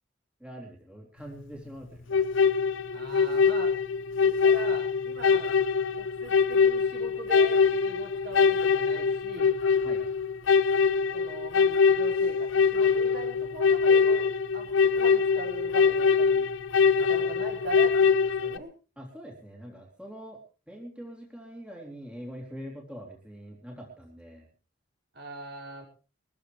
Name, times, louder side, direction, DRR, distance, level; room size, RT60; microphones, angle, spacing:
voice 1, 0.4-2.3 9.8-10.1 19.0-20.4 20.7-24.5, equal, 5° right, -1 dB, 3.3 m, -43 dB
sound 1, 2.1-18.6, left 5 dB, 65° left, 0.7 m, -23 dB
voice 2, 2.9-3.7 4.2-5.5 6.0-9.6 11.1-14.3 14.5-16.5 16.9-18.7 25.1-25.8, right 1 dB, 50° right, 1 dB, 5.2 m, -40 dB
23.0 x 14.0 x 3.3 m, 0.35 s
head